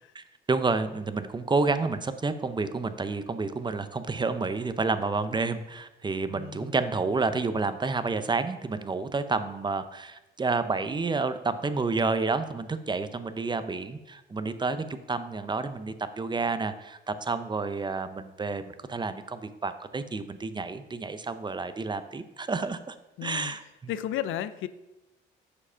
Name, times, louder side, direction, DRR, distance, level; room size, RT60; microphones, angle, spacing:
voice 1, 0.1-23.0 23.2-23.9, right 3 dB, 20° right, 11 dB, 0.5 m, -30 dB
voice 2, 6.3-6.7 23.2-23.5 23.9-24.7, left 11 dB, 80° left, 13 dB, 0.5 m, -33 dB
6.5 x 4.9 x 5.6 m, 0.97 s
cardioid pair, 90°, 20 cm